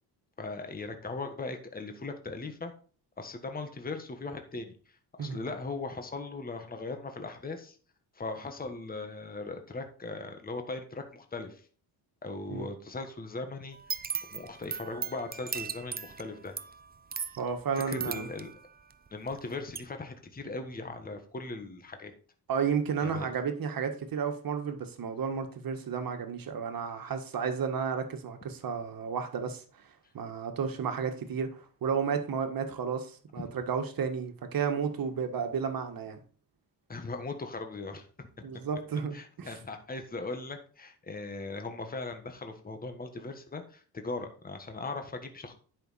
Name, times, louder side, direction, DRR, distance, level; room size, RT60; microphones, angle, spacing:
voice 1, 0.4-2.7 3.2-4.7 5.2-7.8 8.1-11.7 12.2-13.8 14.3-16.6 17.9-18.5 19.1-22.1 23.0-23.3 33.4-33.5 36.9-38.3 39.1-45.5, left 3 dB, 20° left, 6 dB, 1.5 m, -39 dB
sound 1, 13.7-19.4 19.7-19.8, right 6 dB, 25° right, 0.6 m, -38 dB
voice 2, 17.4-18.3 22.5-29.6 30.1-36.2 38.4-39.5, right 6 dB, 55° right, 7 dB, 1.7 m, -32 dB
10.5 x 5.9 x 4.2 m, 0.42 s
cardioid pair, 115°, 40 cm